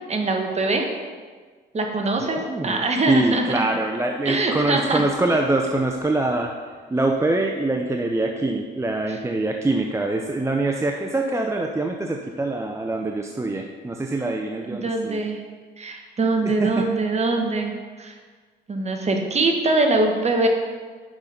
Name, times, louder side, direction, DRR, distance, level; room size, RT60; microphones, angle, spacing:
voice 1, 0.1-0.8 1.7-3.7 4.2-5.1 9.1-9.2 14.6-15.4 15.8-17.7 18.0-18.1 18.7-20.5, right 2 dB, 35° right, 3 dB, 1.2 m, -23 dB
voice 2, 2.2-6.5 6.9-15.2 16.4-16.9, right 2 dB, 15° right, 2 dB, 0.5 m, -24 dB
6.2 x 5.7 x 5.2 m, 1.5 s
cardioid pair, 90°, 20 cm